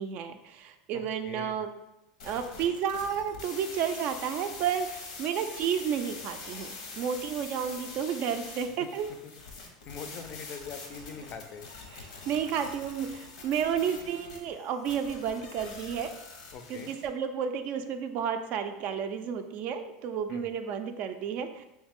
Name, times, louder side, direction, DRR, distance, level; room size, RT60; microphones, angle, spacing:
voice 1, 0.0-1.7 2.2-6.7 6.9-9.1 12.3-16.1 16.7-21.6, right 8 dB, 50° right, 8 dB, 0.3 m, -31 dB
voice 2, 0.9-1.6 8.8-8.9 9.2-11.7 16.5-16.9 20.3-20.5, left 6 dB, 45° left, 7 dB, 0.4 m, -44 dB
sound 1, 2.2-17.1, left 3 dB, 90° left, 0.8 m, -44 dB
3.2 x 3.1 x 3.5 m, 0.92 s
supercardioid pair, 115°, 3 cm